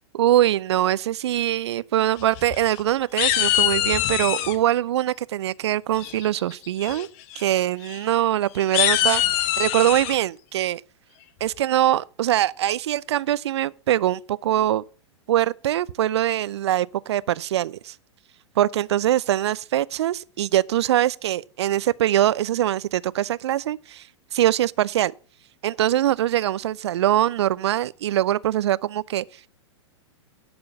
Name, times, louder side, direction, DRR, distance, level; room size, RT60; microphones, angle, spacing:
voice 1, 0.1-7.1 7.4-10.8 11.4-14.8 15.3-17.9 18.6-24.0 24.3-25.1 25.6-29.2, right 12 dB, 60° right, 0.5 m, -23 dB
sound 1, 2.2-2.8 3.2-4.6 6.0-6.4 6.8-7.1 7.3-7.4 7.8-8.0 8.6-10.2, left 13 dB, 40° left, 1.1 m, -23 dB
10.5 x 6.9 x 6.7 m
figure-of-eight pair, 105°, 16 cm